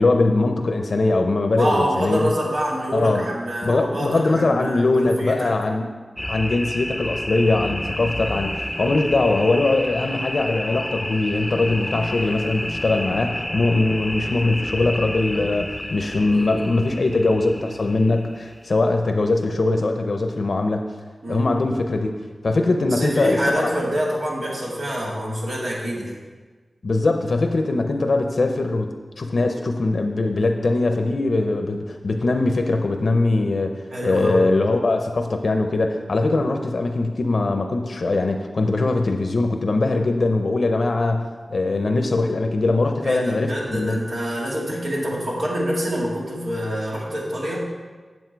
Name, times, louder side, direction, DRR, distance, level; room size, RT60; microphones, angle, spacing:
voice 1, 0.0-2.3 2.9-3.3 3.6-5.8 6.3-20.8 21.3-22.2 22.4-23.7 26.8-28.9 29.2-44.0, left 2 dB, 70° left, 5 dB, 0.6 m, -21 dB
voice 2, 1.6-5.5 16.2-16.9 21.2-21.5 22.9-26.2 33.9-34.5 43.0-47.6, equal, 85° right, -5 dB, 2.3 m, -26 dB
sound 1, 6.2-18.8, left 1 dB, 10° left, 0.6 m, -30 dB
8.1 x 7.0 x 4.6 m, 1.4 s
cardioid pair, 50°, 0 cm